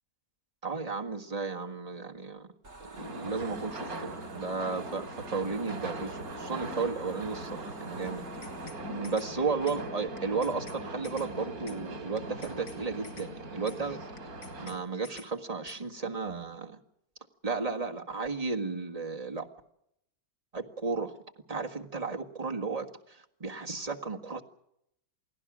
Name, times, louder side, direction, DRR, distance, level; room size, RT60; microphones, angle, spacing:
voice 1, 0.6-2.5 2.8-8.2 8.9-14.1 14.6-16.8 17.4-19.5 20.5-21.2 21.5-24.4, right 4 dB, 25° right, 2 dB, 1.7 m, -34 dB
sound 1, 2.6-8.7, right 3 dB, 55° right, 2.8 m, -48 dB
sound 2, 2.9-14.8, right 1 dB, 80° right, 3.3 m, -40 dB
sound 3, 8.2-8.8 9.0-9.3 9.7-9.8 10.2-10.8 11.0-11.3 11.7-11.8 12.2-12.8 13.0-13.3 13.7-13.8 14.2-14.8 15.0-15.3 15.7-15.8, left 4 dB, 50° left, 1.9 m, -50 dB
29.0 x 18.0 x 6.2 m, 0.78 s
omnidirectional pair, 1.5 m